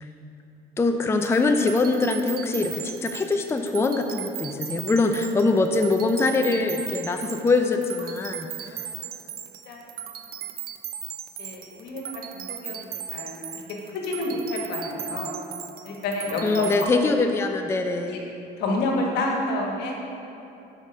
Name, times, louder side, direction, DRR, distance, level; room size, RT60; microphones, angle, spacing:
voice 1, 0.8-8.8 16.4-18.1, left 3 dB, 15° left, 5 dB, 0.4 m, -23 dB
sound 1, 1.2-16.8, right 11 dB, 65° right, 0.5 m, -37 dB
voice 2, 11.4-12.0 12.3-13.4 13.9-15.3 15.8-16.7 18.1-18.2 18.6-19.9, left 2 dB, 80° left, 0 dB, 1.4 m, -29 dB
6.4 x 5.0 x 6.3 m, 3.0 s
cardioid pair, 110°, 17 cm